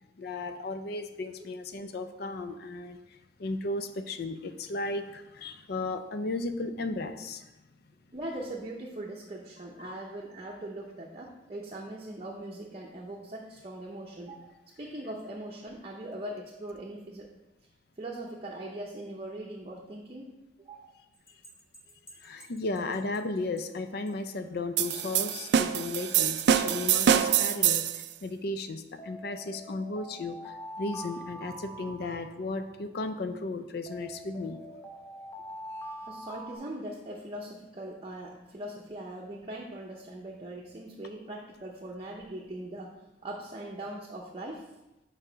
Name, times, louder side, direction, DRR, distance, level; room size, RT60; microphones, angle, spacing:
voice 1, 0.2-7.5 9.8-9.9 22.1-34.6, left 2 dB, 60° left, 9 dB, 0.5 m, -35 dB
voice 2, 8.1-17.3 18.0-20.3 20.6-21.0 36.1-42.9 43.2-44.7, right 1 dB, 30° right, -3 dB, 0.6 m, -41 dB
sound 1, 21.3-23.2 23.6-23.7 24.1-24.2 24.8-25.3 25.9-26.4 26.9-27.3 29.0-32.7 33.9-36.6, equal, 15° left, 0.8 m, -44 dB
sound 2, 24.8-28.0, right 9 dB, 65° right, 0.3 m, -25 dB
4.8 x 4.7 x 5.0 m, 0.98 s
head